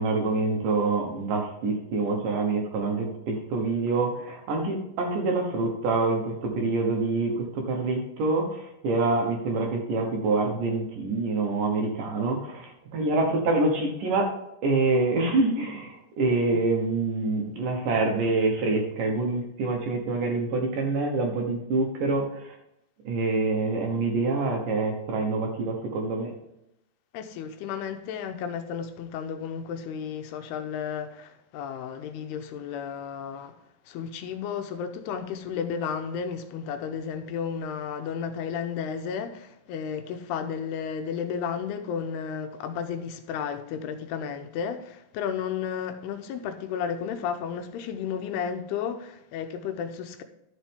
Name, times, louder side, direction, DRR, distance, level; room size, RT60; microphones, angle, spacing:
voice 1, 0.0-14.3 14.6-22.6 23.0-26.3, right 3 dB, 65° right, 2.5 m, -26 dB
voice 2, 27.1-33.6 33.9-50.2, left 7 dB, 80° left, 2.7 m, -33 dB
12.5 x 7.3 x 3.6 m
omnidirectional pair, 4.8 m